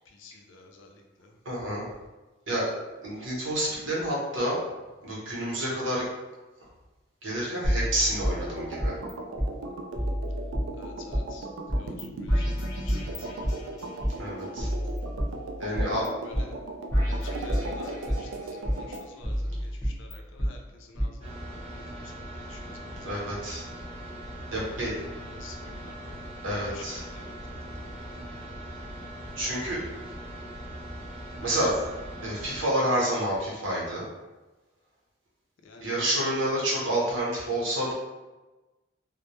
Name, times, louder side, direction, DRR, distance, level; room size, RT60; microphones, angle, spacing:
voice 1, 0.1-1.3 10.8-13.7 15.6-16.5 17.1-22.1 22.5-23.3 24.6-26.2 26.5-28.5 35.6-36.0, left 3 dB, 70° left, 2 dB, 0.4 m, -51 dB
voice 2, 1.4-1.9 2.5-2.7 3.0-4.6 5.0-6.0 7.2-9.0 14.2-14.7 15.6-16.1 23.0-23.6 24.5-24.9 26.4-27.0 29.4-29.8 31.4-31.8 32.2-34.1 35.8-37.9, right 1 dB, 70° right, -5 dB, 0.8 m, -28 dB
sound 1, 7.6-9.1 9.4-9.5 10.0-11.2 11.7-12.0 12.3-14.1 14.6-16.1 16.3-16.4 16.9-18.3 18.6-20.5 21.0-21.1, equal, 15° left, 0.7 m, -29 dB
sound 2, 8.3-19.1, right 2 dB, 90° right, 0.3 m, -38 dB
sound 3, 21.2-32.7, right 1 dB, 30° right, 0.6 m, -40 dB
2.1 x 2.0 x 2.9 m, 1.1 s
head